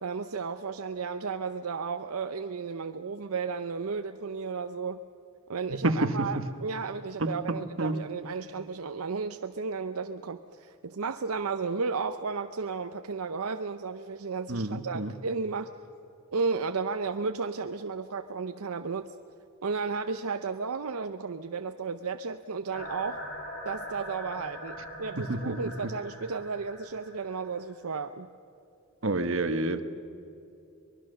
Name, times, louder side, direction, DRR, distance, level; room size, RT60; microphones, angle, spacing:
voice 1, 0.0-5.0 5.5-15.7 16.3-19.1 19.6-23.2 23.6-28.3, right 5 dB, 85° right, 8 dB, 0.7 m, -33 dB
voice 2, 5.7-6.4 7.2-8.0 14.5-15.1 25.2-25.5 29.0-29.8, right 2 dB, 65° right, 9 dB, 1.3 m, -29 dB
sound 1, 22.7-27.7, left 1 dB, 50° left, 4.9 m, -42 dB
24.0 x 21.0 x 6.6 m, 2.7 s
head